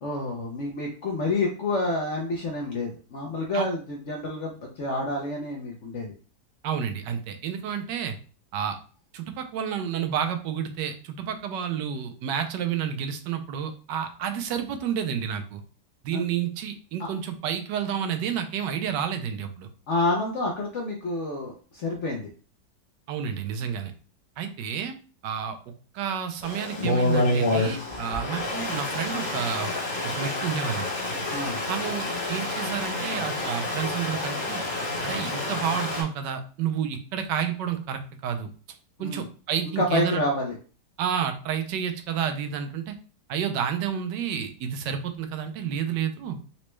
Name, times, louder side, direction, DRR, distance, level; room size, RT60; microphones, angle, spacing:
voice 1, 0.0-6.1 16.1-16.2 17.0-17.1 19.9-22.3 31.3-31.6 39.0-39.2 39.8-40.6, left 2 dB, 65° left, 0 dB, 0.7 m, -28 dB
voice 2, 6.6-8.2 8.5-8.8 9.1-15.6 16.0-19.7 23.1-23.9 24.4-24.9 25.2-25.6 25.9-29.7 30.0-30.9 31.7-34.6 35.0-38.5 39.0-40.2 41.0-42.9 43.3-46.4, right 8 dB, 85° right, 7 dB, 1.2 m, -30 dB
Stream, 26.4-36.0, left 1 dB, 30° left, 1.0 m, -28 dB
3.9 x 2.2 x 3.1 m, 0.37 s
omnidirectional pair, 1.8 m